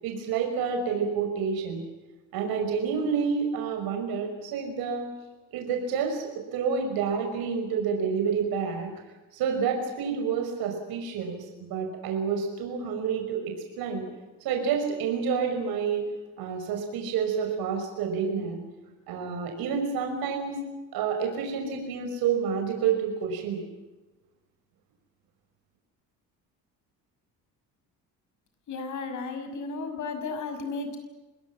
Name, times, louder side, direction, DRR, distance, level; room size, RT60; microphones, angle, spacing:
voice 1, 0.0-1.8 2.3-5.1 5.5-8.9 9.3-14.0 14.4-16.1 16.4-18.6 19.1-20.6 20.9-23.6, right 6 dB, 85° right, 3 dB, 5.7 m, -29 dB
voice 2, 28.7-31.0, left 4 dB, 55° left, 7 dB, 6.2 m, -34 dB
27.0 x 20.0 x 7.4 m, 1.1 s
cardioid pair, 130°, 36 cm